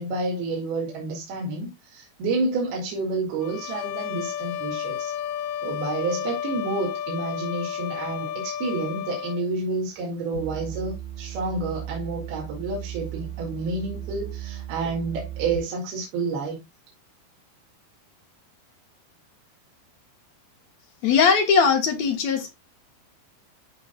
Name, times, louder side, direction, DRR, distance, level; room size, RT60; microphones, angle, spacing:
voice 1, 0.0-5.1 5.6-16.6, right 3 dB, 80° right, 4.1 m, -29 dB
sound 1, 3.4-9.5, left 10 dB, 80° left, 2.3 m, -32 dB
sound 2, 10.3-15.6, right 10 dB, 40° right, 4.0 m, -36 dB
voice 2, 21.0-22.5, left 6 dB, 60° left, 2.2 m, -20 dB
13.0 x 5.0 x 2.3 m
omnidirectional pair, 4.4 m